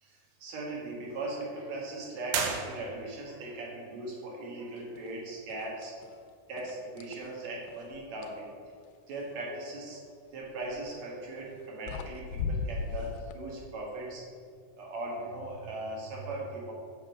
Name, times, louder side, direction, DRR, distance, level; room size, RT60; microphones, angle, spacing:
voice 1, 0.0-6.2 6.5-8.5 9.1-10.0 10.3-14.4 14.8-16.7, right 2 dB, 60° right, -2 dB, 2.5 m, -39 dB
sound 1, 2.3-3.3, right 5 dB, 80° right, 2.7 m, -33 dB
sound 2, 5.0-5.2 5.5-6.1 6.6-8.4 10.6-10.9 11.6-11.7 11.9-13.3, left 4 dB, 85° left, 2.4 m, -37 dB
7.4 x 5.3 x 6.3 m, 2.2 s
omnidirectional pair, 4.0 m